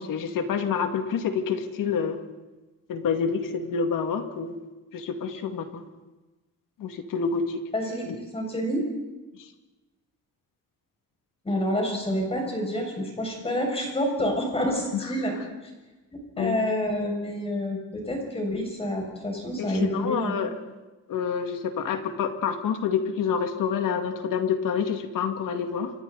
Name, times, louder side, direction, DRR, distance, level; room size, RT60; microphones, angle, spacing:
voice 1, 0.0-2.2 2.9-4.5 4.9-5.8 6.8-7.6 14.9-15.0 16.4-16.6 19.6-20.5 21.1-25.9, left 6 dB, 70° left, 5 dB, 2.3 m, -27 dB
voice 2, 7.7-8.1 8.3-8.8 11.4-15.3 16.4-20.3, equal, 15° left, 1 dB, 6.4 m, -28 dB
29.0 x 26.0 x 4.1 m, 1.1 s
cardioid pair, 170°, 34 cm